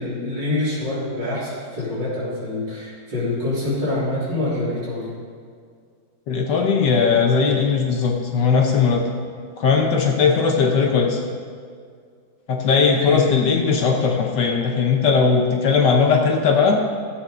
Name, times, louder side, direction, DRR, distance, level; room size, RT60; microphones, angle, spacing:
voice 1, 0.0-5.1 13.0-13.3, left 2 dB, 65° right, -8 dB, 4.3 m, -25 dB
voice 2, 6.3-9.0 9.6-11.2 12.5-16.8, left 5 dB, 65° left, 1 dB, 1.6 m, -18 dB
15.5 x 8.4 x 3.9 m, 2.1 s
omnidirectional pair, 2.1 m